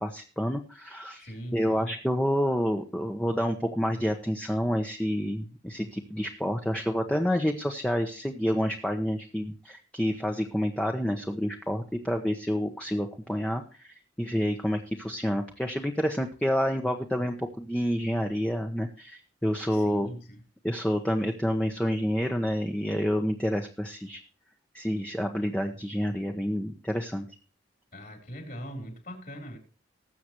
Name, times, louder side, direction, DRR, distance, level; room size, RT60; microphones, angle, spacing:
voice 1, 0.0-20.1 20.6-24.2 24.7-27.3, equal, 5° left, 3 dB, 1.1 m, -29 dB
voice 2, 1.2-1.9 19.7-20.4 27.9-29.6, equal, 50° left, 4 dB, 4.0 m, -41 dB
19.5 x 8.1 x 3.1 m, 0.37 s
head